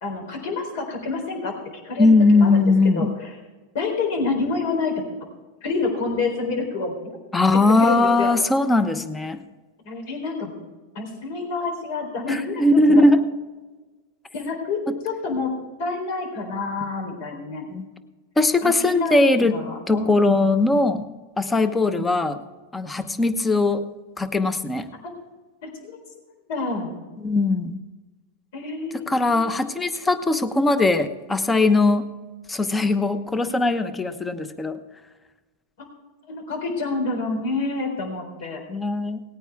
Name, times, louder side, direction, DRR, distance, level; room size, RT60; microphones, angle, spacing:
voice 1, 0.0-1.5 1.8-2.6 3.0-3.1 3.7-5.0 5.6-7.2 7.8-8.3 9.9-10.5 10.9-12.6 14.3-17.6 18.6-20.7 21.9-22.1 23.0-23.1 25.0-25.1 25.6-26.0 26.5-26.9 28.5-29.4 35.8-35.9 36.3-38.6, left 3 dB, 60° left, 2 dB, 3.8 m, -28 dB
voice 2, 2.0-3.1 7.3-9.4 12.3-13.2 14.9-15.0 17.7-17.8 18.4-19.6 19.9-21.1 21.4-22.4 22.7-23.8 24.2-24.9 27.2-27.8 29.1-32.1 32.5-34.8 38.7-39.2, left 2 dB, 10° left, 10 dB, 0.9 m, -20 dB
18.5 x 9.2 x 3.6 m, 1.2 s
supercardioid pair, 130°, 0 cm